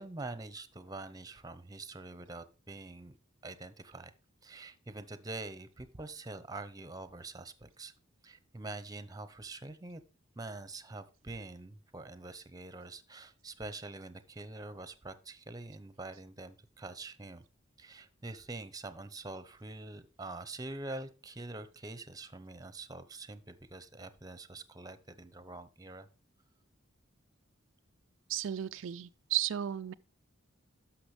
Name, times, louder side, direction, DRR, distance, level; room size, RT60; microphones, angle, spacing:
voice 1, 0.0-3.2 3.4-4.1 4.4-7.9 8.2-10.0 10.4-17.4 17.8-26.1, right 2 dB, 20° right, 0.8 m, -45 dB
voice 2, 28.3-29.9, right 11 dB, 70° right, 0.4 m, -34 dB
12.0 x 6.0 x 3.3 m
head